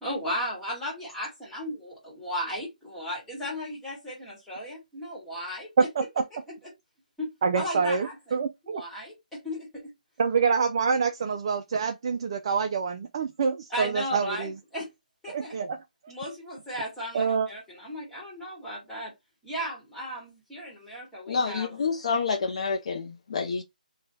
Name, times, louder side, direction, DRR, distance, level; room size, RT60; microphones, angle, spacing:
voice 1, 0.0-5.9 6.5-6.6 7.2-8.2 8.6-9.9 13.7-14.9 15.2-15.6 16.1-19.1 19.4-21.8, equal, 5° left, 1.3 m, -35 dB
voice 2, 5.8-6.2 7.4-8.8 10.2-14.5 15.3-15.8 17.1-17.5, right 5 dB, 35° right, 0.3 m, -26 dB
voice 3, 21.3-23.6, left 5 dB, 45° left, 0.6 m, -28 dB
3.2 x 2.2 x 3.9 m
hypercardioid pair, 165°, 5 cm